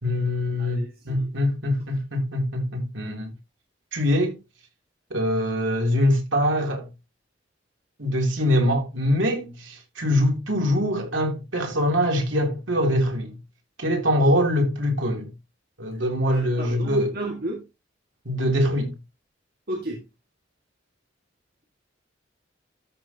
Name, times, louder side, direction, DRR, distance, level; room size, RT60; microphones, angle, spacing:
voice 1, 0.0-3.3 3.9-4.3 5.1-6.9 8.0-13.3 13.8-15.3 15.8-17.1 18.2-18.9, equal, 90° right, 3.2 m, -23 dB
voice 2, 0.6-1.3 16.3-17.6 19.7-20.0, right 1 dB, 55° right, 2.0 m, -33 dB
13.5 x 6.2 x 2.9 m
head